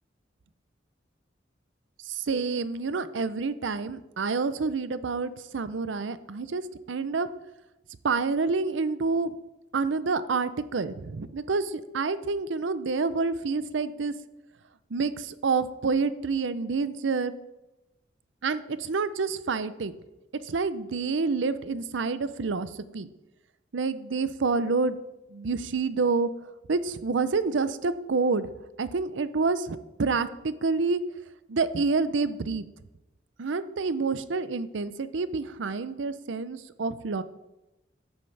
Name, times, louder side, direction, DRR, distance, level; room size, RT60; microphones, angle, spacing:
voice 1, 2.1-6.6 6.9-7.3 8.0-9.3 9.7-14.1 14.9-17.3 18.4-19.9 20.5-23.1 23.7-25.0 25.3-26.3 26.7-28.5 28.8-31.0 31.5-32.7 33.4-37.2, right 4 dB, 85° right, 14 dB, 0.6 m, -28 dB
13.0 x 9.5 x 3.4 m, 0.99 s
head